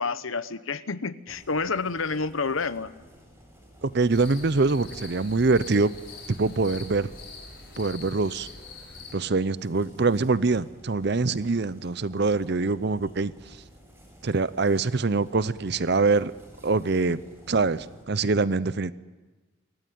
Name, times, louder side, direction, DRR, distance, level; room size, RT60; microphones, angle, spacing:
voice 1, 0.0-2.9, left 4 dB, 80° left, 14 dB, 1.0 m, -29 dB
sound 1, 1.3-18.0, equal, 10° right, 6.1 m, -52 dB
voice 2, 3.8-5.9 6.4-7.1 7.8-8.5 9.1-13.3 14.2-16.3 16.6-17.2 17.5-18.9, right 3 dB, 55° right, 17 dB, 0.7 m, -24 dB
sound 2, 4.1-9.1, left 4 dB, 55° left, 4.7 m, -44 dB
27.5 x 14.5 x 9.4 m, 1.2 s
head